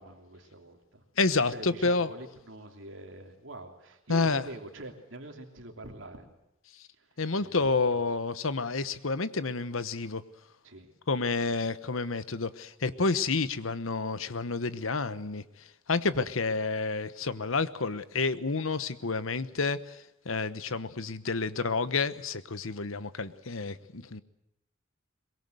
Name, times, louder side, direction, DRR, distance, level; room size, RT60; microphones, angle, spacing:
voice 1, 0.0-1.0 1.5-6.3 6.9-8.0 10.6-10.9, right 1 dB, 70° right, 3 dB, 3.1 m, -45 dB
voice 2, 1.2-2.1 4.1-4.4 6.8-6.9 7.2-10.2 11.1-15.4 15.9-24.2, left 4 dB, 85° left, 14 dB, 1.1 m, -29 dB
23.0 x 22.0 x 7.9 m, 0.86 s
head